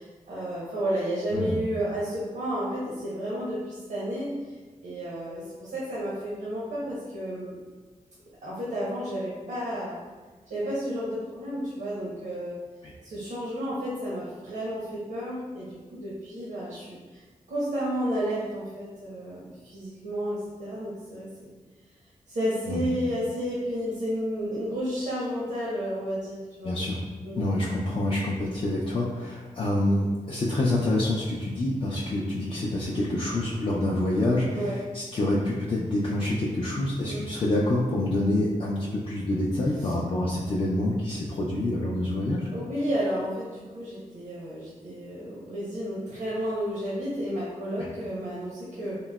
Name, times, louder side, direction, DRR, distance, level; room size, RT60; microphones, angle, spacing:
voice 1, 0.0-4.4 4.8-7.6 8.4-10.0 10.5-12.6 13.0-17.0 17.5-21.5 22.3-26.8 27.2-27.4 34.5-34.7 37.1-37.3 42.5-49.0, equal, 85° right, -7 dB, 0.7 m, -31 dB
voice 2, 26.6-27.0 27.4-42.5 47.8-47.9, left 1 dB, 40° left, -5 dB, 0.3 m, -27 dB
3.7 x 2.0 x 2.2 m, 1.3 s
wide cardioid pair, 135°, 14 cm